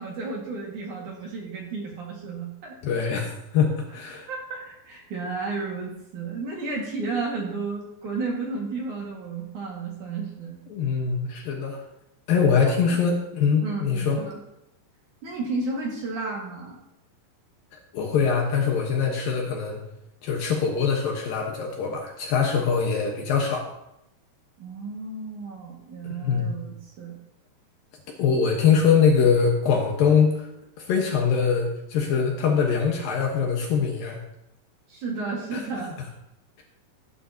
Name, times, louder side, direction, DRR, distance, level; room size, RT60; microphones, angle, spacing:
voice 1, 0.0-2.8 4.3-10.6 12.6-12.7 13.6-14.4 15.2-16.8 24.6-27.2 34.9-35.9, right 3 dB, 55° right, -2 dB, 2.9 m, -32 dB
voice 2, 2.8-4.3 10.7-11.8 12.3-14.2 17.7-19.8 20.2-23.7 26.1-26.5 28.2-30.5 30.9-34.2 35.5-35.6, left 6 dB, 65° left, 0 dB, 2.6 m, -23 dB
16.5 x 10.0 x 2.8 m, 0.87 s
omnidirectional pair, 5.0 m